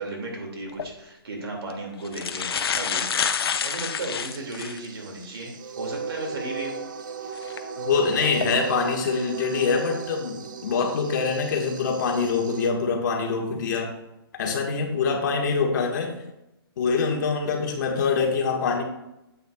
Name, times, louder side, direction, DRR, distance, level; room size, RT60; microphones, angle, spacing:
voice 1, 0.0-6.8, right 2 dB, 90° right, 1 dB, 2.5 m, -35 dB
sound 1, 0.7-0.9 1.7-1.8 2.0-4.9 5.4-5.5 7.4-7.6 8.2-8.5, left 7 dB, 80° left, 0.7 m, -28 dB
sound 2, 2.3-12.7, right 6 dB, 55° right, 0.7 m, -37 dB
voice 2, 7.8-13.9 14.3-16.1 16.8-18.8, left 5 dB, 50° left, 1 dB, 1.6 m, -24 dB
8.9 x 8.2 x 2.4 m, 0.91 s
hypercardioid pair, 160°, 13 cm